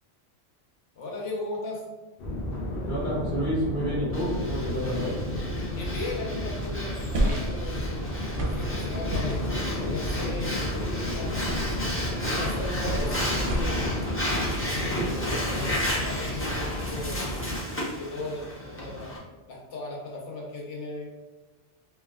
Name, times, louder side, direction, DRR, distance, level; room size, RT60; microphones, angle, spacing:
voice 1, 1.0-1.8 5.7-8.1 8.4-9.5 9.8-11.4 12.2-13.8 15.1-17.3 18.0-19.1 19.5-21.1, left 2 dB, 80° left, -3 dB, 1.1 m, -37 dB
sound 1, 2.2-17.6, left 1 dB, 60° left, 0.7 m, -32 dB
voice 2, 2.8-5.2, equal, 45° left, -9 dB, 1.5 m, -30 dB
Breathing, 4.1-19.2, equal, 20° left, 0.3 m, -34 dB
sound 2, 7.1-13.9, right 1 dB, 60° right, 0.6 m, -32 dB
3.3 x 2.2 x 2.2 m, 1.2 s
omnidirectional pair, 1.2 m